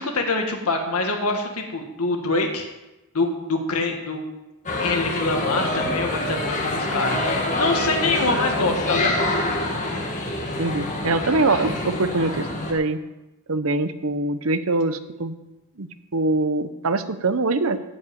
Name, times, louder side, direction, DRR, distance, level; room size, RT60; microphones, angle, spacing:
voice 1, 0.0-2.7 3.1-4.2 4.8-7.2 7.6-9.2, left 3 dB, 80° left, 3 dB, 1.7 m, -25 dB
sound 1, 4.7-12.7, left 2 dB, 35° left, 2.0 m, -26 dB
voice 2, 10.6-13.0 13.5-15.3 15.8-17.8, right 3 dB, 65° right, 11 dB, 0.8 m, -23 dB
14.5 x 5.5 x 8.7 m, 1.0 s
head